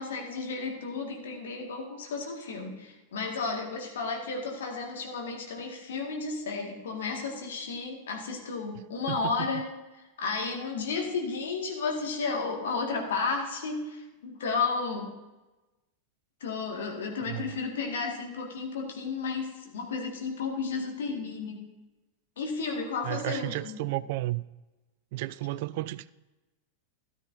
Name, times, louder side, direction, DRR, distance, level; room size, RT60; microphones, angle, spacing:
voice 1, 0.0-9.7 9.9-15.1 16.4-21.6 22.4-23.8, left 4 dB, 60° left, 1 dB, 1.9 m, -33 dB
voice 2, 9.1-9.5 17.3-17.5 23.0-24.4 25.1-26.1, right 17 dB, 50° right, 18 dB, 0.3 m, -33 dB
13.5 x 12.0 x 2.7 m, 1.1 s
figure-of-eight pair, 90°, 0 cm